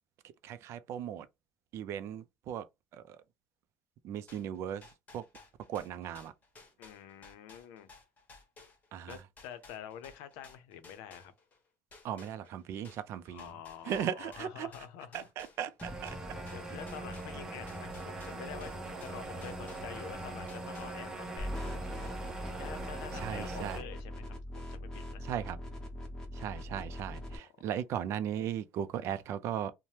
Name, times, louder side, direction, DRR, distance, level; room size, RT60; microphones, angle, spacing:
voice 1, 0.4-1.3 1.7-2.7 2.9-3.2 4.0-4.8 5.1-5.2 5.7-6.3 8.9-9.2 12.0-13.5 13.9-14.7 15.1-16.2 23.1-23.8 25.2-25.6 26.3-29.7, right 9 dB, 60° right, 0.4 m, -37 dB
sound 1, 4.3-11.6 11.9-20.2 20.5-21.3, left 3 dB, 30° left, 1.1 m, -56 dB
voice 2, 6.8-7.9 9.0-11.3 13.3-15.3 16.5-22.2 22.6-25.2 26.7-27.7, left 9 dB, 85° left, 0.6 m, -48 dB
sound 2, 15.8-23.8, right 2 dB, 10° right, 0.8 m, -41 dB
sound 3, 21.4-27.4, equal, 15° left, 1.2 m, -41 dB
2.8 x 2.1 x 3.2 m
cardioid pair, 105°, 5 cm